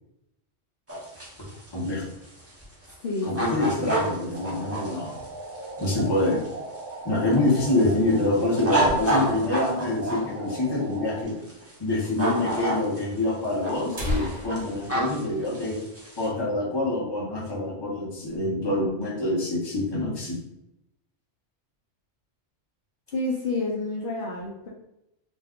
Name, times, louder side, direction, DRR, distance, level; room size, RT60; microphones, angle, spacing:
sound 1, 0.9-6.9 7.3-10.2 11.3-11.7 12.0-13.2 13.5-16.3, right 1 dB, 20° right, 0.4 m, -29 dB
voice 1, 1.7-2.0 3.2-5.1 5.8-6.4 7.0-11.3 11.8-15.8 16.2-20.4, left 2 dB, 25° left, -4 dB, 0.7 m, -26 dB
voice 2, 3.0-4.6 23.1-24.7, left 2 dB, 60° left, -6 dB, 0.7 m, -31 dB
sound 2, 4.3-11.2, right 2 dB, 75° right, 0.9 m, -38 dB
sound 3, 8.1-9.6 9.9-10.0 10.2-10.3 11.0-11.1 12.0-12.1 12.4-12.5 13.3-13.4 13.7-16.3 16.7-16.8 17.2-17.5 17.9-18.4, equal, 40° right, 0.8 m, -36 dB
2.5 x 2.2 x 3.5 m, 0.85 s
omnidirectional pair, 1.2 m